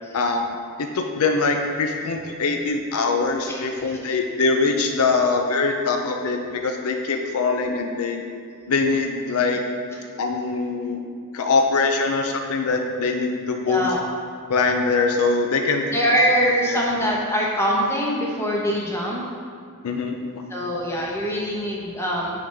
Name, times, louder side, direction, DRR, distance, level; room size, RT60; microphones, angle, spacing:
voice 1, 0.1-0.5 0.8-8.2 8.7-9.6 10.2-11.0 11.3-13.9 14.5-15.8 16.7-16.8 19.8-20.2, left 4 dB, 70° left, 4 dB, 0.5 m, -23 dB
voice 2, 13.7-14.0 15.9-19.2 20.5-22.3, equal, 10° left, -3 dB, 0.9 m, -23 dB
6.3 x 5.6 x 3.4 m, 2.2 s
head